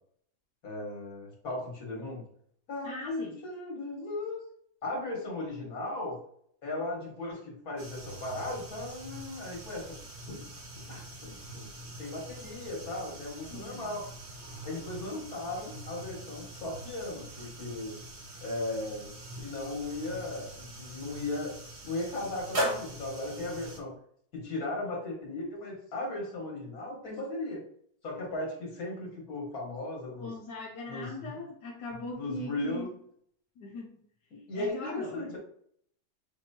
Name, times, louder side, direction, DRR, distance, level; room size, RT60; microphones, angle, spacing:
voice 1, 0.6-2.2 2.7-4.4 4.8-6.2 6.6-10.0 10.3-10.5 10.9-14.1 14.6-18.0 18.4-21.5 21.8-23.9 24.3-27.6 28.0-30.3 30.9-31.4 32.1-32.9 34.3-35.4, left 2 dB, 60° left, -3 dB, 2.1 m, -37 dB
voice 2, 2.8-3.4 13.5-13.9 30.2-32.9 33.6-34.0 34.5-35.4, left 2 dB, 80° left, -2 dB, 1.4 m, -40 dB
sound 1, 7.8-23.8, right 1 dB, 45° right, 1.2 m, -41 dB
6.3 x 3.0 x 2.8 m, 0.65 s
omnidirectional pair, 1.8 m